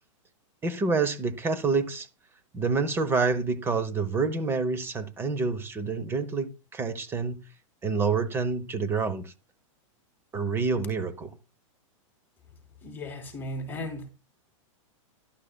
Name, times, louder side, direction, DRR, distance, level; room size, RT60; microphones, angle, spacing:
voice 1, 0.6-2.1 2.5-7.4 7.8-9.3 10.3-11.3, right 4 dB, 15° right, 0.9 m, -27 dB
voice 2, 12.8-14.1, left 1 dB, 10° left, 3.3 m, -36 dB
12.0 x 11.5 x 2.2 m
hypercardioid pair, 145°, 17 cm